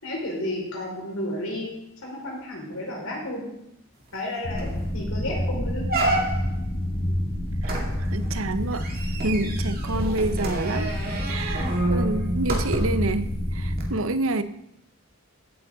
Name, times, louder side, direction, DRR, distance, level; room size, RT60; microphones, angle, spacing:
voice 1, 0.0-1.7 2.0-3.5 4.1-5.9 7.1-7.2, left 1 dB, 75° left, -3 dB, 5.3 m, -32 dB
sound 1, 4.1-4.2 4.6-4.9 5.3-5.4 5.9-6.6 7.6-13.1 13.7-13.8, right 2 dB, 45° right, 2.2 m, -29 dB
sound 2, 4.4-13.9, left 1 dB, 35° left, 1.4 m, -28 dB
voice 2, 7.6-8.9 9.2-10.9 11.3-14.4, right 2 dB, 75° right, 12 dB, 0.8 m, -28 dB
15.5 x 9.3 x 3.9 m, 0.80 s
head